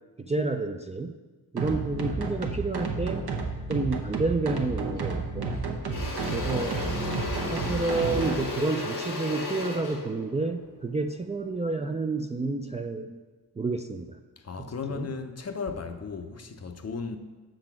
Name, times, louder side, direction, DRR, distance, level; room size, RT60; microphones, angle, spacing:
voice 1, 0.2-1.1 1.5-3.2 3.7-5.6 6.3-6.8 7.5-13.2 13.6-14.2 14.6-15.1, right 3 dB, 20° right, 0.3 m, -30 dB
sound 1, 1.6-8.4, right 4 dB, 75° right, 0.9 m, -31 dB
Engine / Drill, 5.0-5.2 5.5-11.7, left 3 dB, 80° left, 1.3 m, -35 dB
voice 2, 14.4-17.2, left 5 dB, 40° left, 0.6 m, -35 dB
6.4 x 4.0 x 5.9 m
cardioid pair, 55°, 38 cm